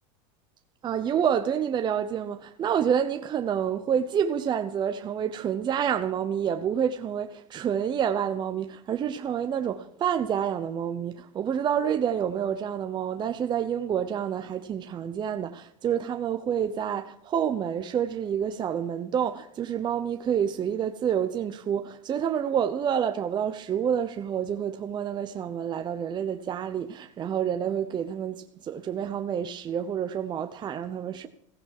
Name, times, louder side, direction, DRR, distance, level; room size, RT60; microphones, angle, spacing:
voice 1, 0.8-31.3, right 8 dB, 30° right, 0.8 m, -28 dB
15.5 x 15.0 x 4.8 m
supercardioid pair, 130°, 16 cm